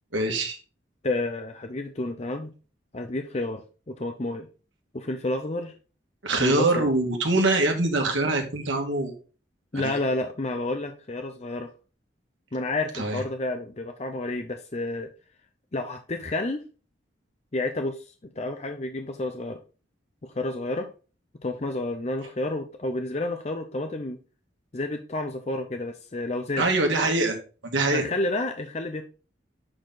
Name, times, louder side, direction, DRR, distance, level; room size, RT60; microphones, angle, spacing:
voice 1, 0.1-0.6 6.2-9.1 9.7-10.0 12.9-13.2 26.6-27.4 27.7-28.1, right 2 dB, 80° right, 3 dB, 1.8 m, -24 dB
voice 2, 1.0-2.5 2.9-4.5 4.9-5.7 6.4-6.9 9.7-11.7 12.5-15.1 15.7-16.6 17.5-18.0 18.4-19.6 20.2-20.9 21.4-24.2 24.7-26.6 27.9-29.0, left 2 dB, 35° left, 6 dB, 0.6 m, -30 dB
7.7 x 4.4 x 3.8 m, 0.35 s
head